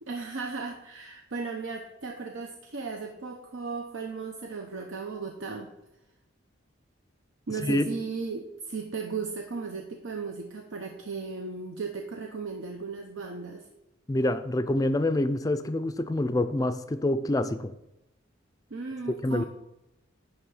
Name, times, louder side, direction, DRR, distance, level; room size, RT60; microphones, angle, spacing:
voice 1, 0.0-5.7 7.5-13.7 18.7-19.4, right 4 dB, 80° right, 3 dB, 0.8 m, -36 dB
voice 2, 14.1-17.7 19.2-19.4, left 1 dB, 15° left, 11 dB, 0.4 m, -26 dB
10.5 x 3.6 x 7.0 m, 0.91 s
head